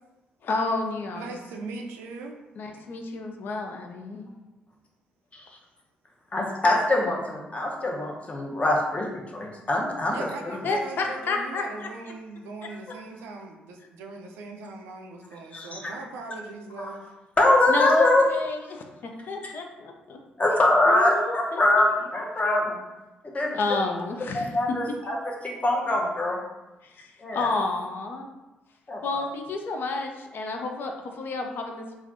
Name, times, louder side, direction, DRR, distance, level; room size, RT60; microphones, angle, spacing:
voice 1, 0.4-1.3 2.6-4.3 10.6-11.9 17.7-20.2 20.9-21.9 23.5-24.5 26.8-28.3 29.0-31.9, left 3 dB, 60° left, 3 dB, 0.4 m, -30 dB
voice 2, 1.1-2.3 10.1-17.1, right 3 dB, 75° right, 2 dB, 0.3 m, -40 dB
voice 3, 6.3-10.2 10.4-10.6 15.5-15.9 16.8-16.9 17.4-18.2 19.4-19.5 20.4-22.8 23.2-23.6 24.3-26.4 27.2-27.5 28.9-29.2, left 1 dB, 35° left, -1 dB, 0.8 m, -23 dB
3.2 x 2.4 x 2.5 m, 1.1 s
hypercardioid pair, 45°, 4 cm